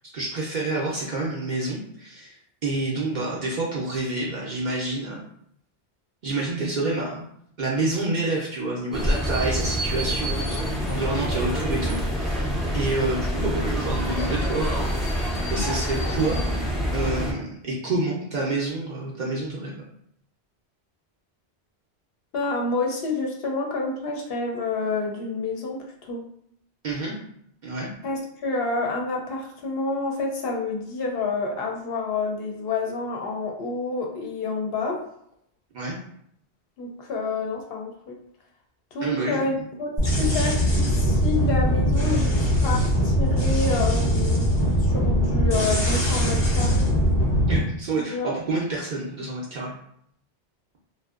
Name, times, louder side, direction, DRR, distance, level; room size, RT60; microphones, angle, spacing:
voice 1, 0.1-2.4 2.6-5.2 6.2-7.3 7.6-12.5 12.7-14.9 15.5-16.7 16.9-19.8 26.8-27.2 27.6-27.9 35.7-36.0 39.0-39.5 40.2-40.4 47.5-49.7, right 2 dB, 55° right, -4 dB, 0.5 m, -28 dB
sound 1, 8.9-17.3, equal, ahead, 0.3 m, -26 dB
voice 2, 22.3-26.2 28.0-35.0 36.8-38.2 38.9-39.9 40.2-44.5 44.8-46.9 48.1-48.3, left 3 dB, 65° left, 0 dB, 0.7 m, -28 dB
sound 2, 40.0-47.6, equal, 30° left, 0.7 m, -21 dB
2.6 x 2.1 x 2.3 m, 0.69 s
omnidirectional pair, 1.1 m